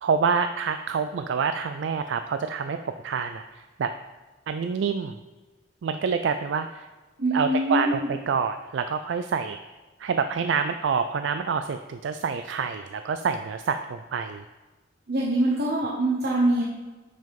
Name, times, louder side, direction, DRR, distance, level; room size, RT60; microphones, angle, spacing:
voice 1, 0.0-3.9 4.5-5.2 5.8-6.9 7.3-9.6 10.0-14.4, right 6 dB, 80° right, 9 dB, 0.4 m, -27 dB
voice 2, 7.2-8.1 15.1-16.6, right 1 dB, 60° right, -4 dB, 1.0 m, -24 dB
6.7 x 6.3 x 5.2 m, 1.2 s
head